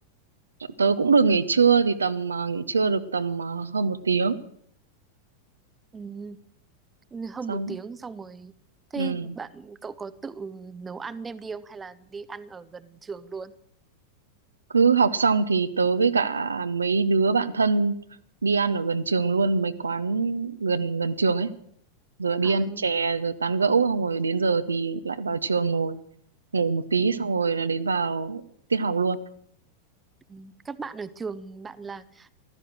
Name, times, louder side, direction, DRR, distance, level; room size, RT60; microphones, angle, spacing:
voice 1, 0.8-4.4 7.5-7.8 9.0-9.3 14.7-18.0 18.4-21.5 22.2-26.0 26.5-28.4 28.7-29.2, right 4 dB, 75° right, 12 dB, 0.8 m, -23 dB
voice 2, 5.9-6.4 7.1-8.5 8.9-13.5 22.4-22.9 27.0-27.3 30.3-32.3, right 5 dB, 15° right, 15 dB, 0.7 m, -37 dB
15.0 x 13.0 x 6.3 m, 0.64 s
figure-of-eight pair, 90°, 0 cm